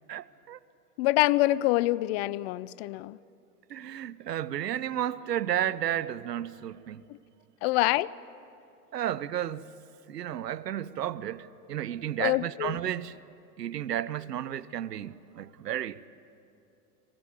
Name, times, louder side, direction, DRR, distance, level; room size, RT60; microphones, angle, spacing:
voice 1, 0.1-0.6 3.7-7.0 8.9-9.7 10.1-13.2 13.6-16.1, right 11 dB, 90° right, 0.7 m, -32 dB
voice 2, 1.0-3.2 7.6-8.1 12.2-12.8, left 18 dB, 45° left, 0.4 m, -25 dB
21.5 x 16.5 x 8.2 m
hypercardioid pair, 95°, 47 cm